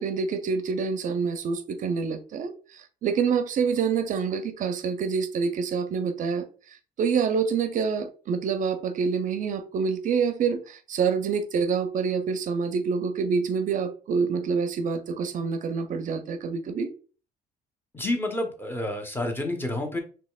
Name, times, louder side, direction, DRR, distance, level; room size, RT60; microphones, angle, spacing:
voice 1, 0.0-16.9, right 5 dB, 50° right, 0.5 m, -27 dB
voice 2, 17.9-20.0, left 1 dB, 15° left, 0.8 m, -29 dB
4.1 x 3.1 x 2.3 m
cardioid pair, 110°, 17 cm